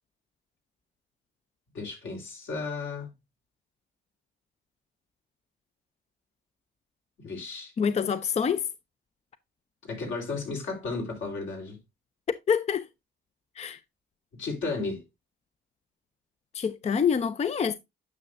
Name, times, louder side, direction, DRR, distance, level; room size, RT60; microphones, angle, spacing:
voice 1, 1.7-3.1 7.2-7.7 9.8-11.8 14.4-15.0, left 3 dB, 70° left, 3.7 m, -34 dB
voice 2, 7.8-8.7 12.5-12.9 13.6-13.8 16.5-17.7, left 7 dB, 35° left, 0.5 m, -26 dB
9.7 x 6.0 x 2.5 m
cardioid pair, 90°, 20 cm